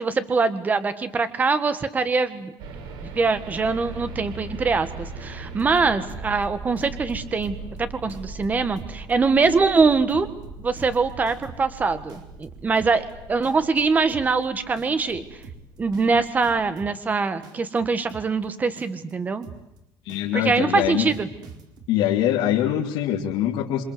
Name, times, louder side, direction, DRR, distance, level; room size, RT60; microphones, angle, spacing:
voice 1, 0.0-2.5 3.2-10.3 10.6-15.2 15.8-19.5 20.3-21.3, right 4 dB, 20° right, 11 dB, 1.7 m, -23 dB
sound 1, 2.6-16.7, right 2 dB, 85° right, 6.0 m, -39 dB
sound 2, 5.5-6.4 6.8-7.8 8.1-8.4 8.8-9.1 9.4-11.8 12.1-13.1 13.4-13.8 14.1-14.4 14.8-17.1 17.4-18.4 18.8-19.1 19.4-19.8 20.1-21.9, right 5 dB, 55° right, 4.7 m, -44 dB
voice 2, 20.0-21.1 21.9-23.8, left 11 dB, 85° left, -3 dB, 3.3 m, -23 dB
27.5 x 26.5 x 8.0 m, 0.86 s
cardioid pair, 165°, 8 cm